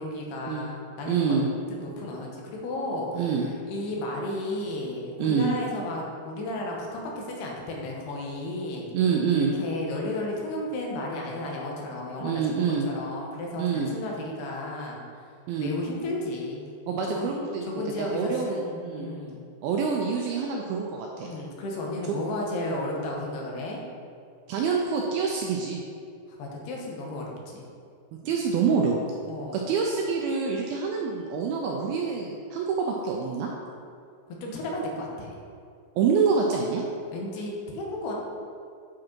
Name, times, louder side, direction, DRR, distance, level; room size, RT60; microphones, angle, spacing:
voice 1, 0.0-1.4 1.7-3.3 3.7-8.9 9.3-15.0 15.6-16.7 17.1-17.3 17.6-19.5 21.2-23.8 26.4-27.7 29.3-29.6 34.3-35.3 37.1-38.1, left 1 dB, 75° left, -1 dB, 3.0 m, -33 dB
voice 2, 1.1-1.5 3.1-3.5 5.2-5.6 8.9-9.5 12.2-12.9 13.6-13.9 15.5-15.7 16.9-19.1 19.6-21.3 22.1-22.2 24.5-25.8 28.2-29.1 29.5-33.5 36.0-36.8, right 5 dB, 80° right, 0 dB, 2.2 m, -26 dB
8.4 x 5.0 x 4.5 m, 2.4 s
omnidirectional pair, 4.8 m